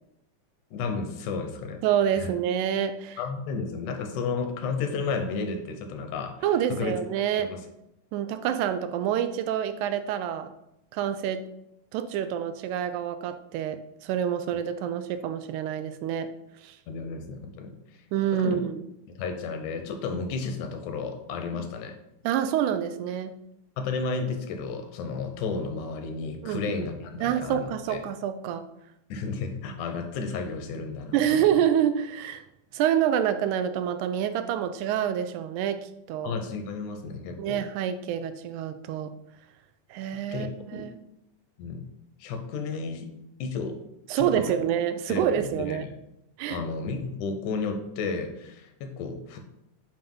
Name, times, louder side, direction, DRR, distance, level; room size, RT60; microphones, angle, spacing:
voice 1, 0.7-1.8 2.2-2.3 3.2-7.0 7.4-7.6 16.9-17.7 18.3-18.6 19.1-22.0 23.8-28.0 29.1-31.4 36.2-37.6 40.3-40.8 41.6-41.9 42.2-43.1 43.4-43.8 44.2-44.6 45.1-45.9 46.5-49.4, left 4 dB, 85° left, 6 dB, 2.2 m, -32 dB
voice 2, 1.8-3.2 6.4-7.5 8.1-10.5 10.9-11.4 11.9-16.3 16.6-16.8 18.1-18.8 21.5-21.7 22.2-23.3 26.4-26.9 27.2-28.7 31.1-32.4 32.7-36.4 37.4-39.1 39.9-41.0 44.1-45.9 46.4-46.6, right 9 dB, 85° right, 10 dB, 2.0 m, -27 dB
7.6 x 2.6 x 5.3 m, 0.83 s
omnidirectional pair, 3.4 m